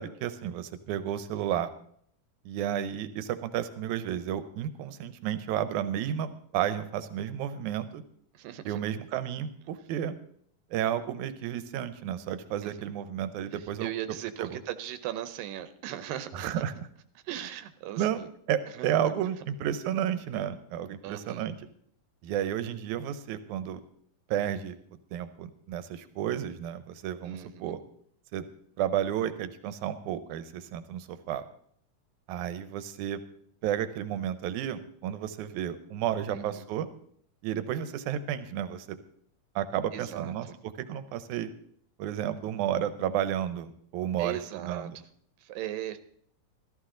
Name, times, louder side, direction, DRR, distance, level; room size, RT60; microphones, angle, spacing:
voice 1, 0.0-1.7 2.5-8.0 8.7-10.1 10.7-13.9 14.4-14.5 16.3-16.7 18.0-18.2 18.5-21.6 22.2-23.8 24.3-24.8 25.1-27.8 28.3-28.4 28.8-31.4 32.3-33.2 33.6-36.9 37.4-39.0 39.6-40.5 40.9-41.5 42.0-45.0, right 10 dB, 75° right, 12 dB, 2.1 m, -32 dB
voice 2, 8.3-8.8 12.6-12.7 13.5-16.5 17.2-18.3 18.7-19.0 21.0-21.5 27.2-27.7 36.3-36.7 39.9-40.6 44.2-45.0 45.4-46.0, right 12 dB, 90° right, 12 dB, 2.6 m, -38 dB
15.0 x 13.0 x 3.8 m, 0.63 s
omnidirectional pair, 3.9 m